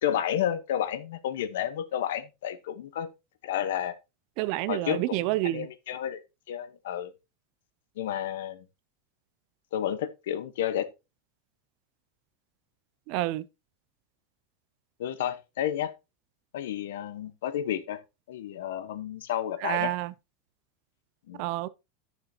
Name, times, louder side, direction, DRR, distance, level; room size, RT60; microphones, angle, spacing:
voice 1, 0.0-3.1 3.4-3.9 4.7-6.2 6.5-7.1 8.0-8.6 9.7-10.8 15.0-15.9 16.5-18.0 18.3-19.9 21.3-21.4, left 10 dB, 80° left, 1.1 m, -31 dB
voice 2, 4.4-5.7 13.1-13.4 19.6-20.1 21.4-21.7, right 17 dB, 40° right, 0.5 m, -28 dB
11.5 x 6.7 x 2.8 m
supercardioid pair, 175°, 0 cm